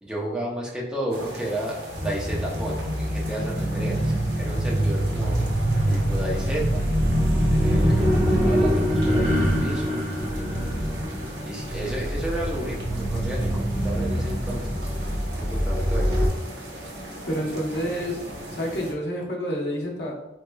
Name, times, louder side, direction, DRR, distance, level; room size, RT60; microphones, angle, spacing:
voice 1, 0.0-5.4 5.9-6.9 7.5-10.0 11.4-14.9 15.4-16.4, right 1 dB, 5° right, -4 dB, 0.6 m, -32 dB
sound 1, 1.1-18.9, equal, 75° right, 0.7 m, -38 dB
sound 2, 1.9-16.3, equal, 35° right, 0.9 m, -24 dB
voice 2, 17.2-18.2 18.5-20.1, equal, 80° left, -2 dB, 0.9 m, -28 dB
3.6 x 3.1 x 2.2 m, 0.94 s
head